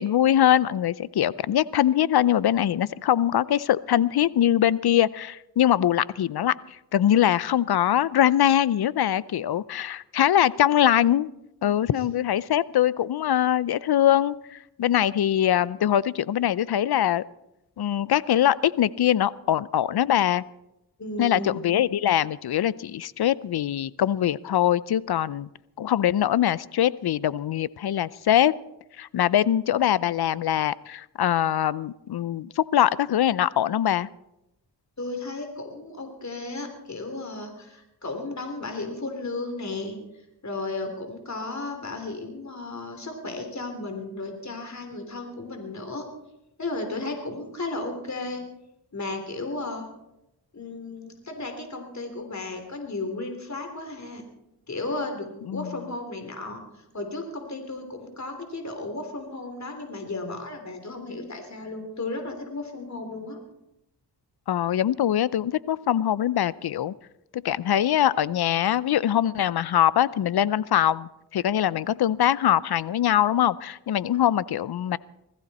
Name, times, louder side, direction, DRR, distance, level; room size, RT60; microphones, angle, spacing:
voice 1, 0.0-11.3 11.6-17.2 17.8-20.4 21.2-25.5 25.8-28.5 29.0-34.1 55.5-55.7 64.5-66.9 67.3-75.0, left 11 dB, 60° left, 20 dB, 0.6 m, -23 dB
voice 2, 21.0-21.6 35.0-40.0 40.4-46.1 46.6-48.4 48.9-49.8 50.5-54.2 54.7-56.6 56.9-63.4, left 2 dB, 40° left, 5 dB, 3.3 m, -34 dB
20.5 x 14.5 x 4.2 m, 0.88 s
cardioid pair, 50°, 42 cm